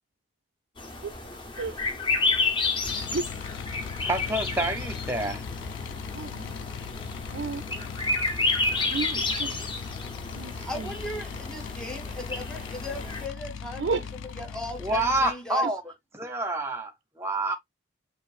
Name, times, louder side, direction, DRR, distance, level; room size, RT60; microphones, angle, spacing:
sound 1, 0.8-13.3, left 3 dB, 25° left, 0.7 m, -31 dB
sound 2, 2.8-15.3, left 7 dB, 65° left, 0.3 m, -39 dB
voice 1, 4.0-5.4 14.8-17.5, right 1 dB, 10° right, 0.7 m, -28 dB
voice 2, 6.1-6.7 7.3-7.6 8.9-9.5 10.3-10.9 13.8-14.1, right 4 dB, 55° right, 0.4 m, -32 dB
voice 3, 10.6-14.0 14.4-15.7, left 1 dB, 5° left, 1.1 m, -37 dB
6.9 x 2.4 x 2.5 m
head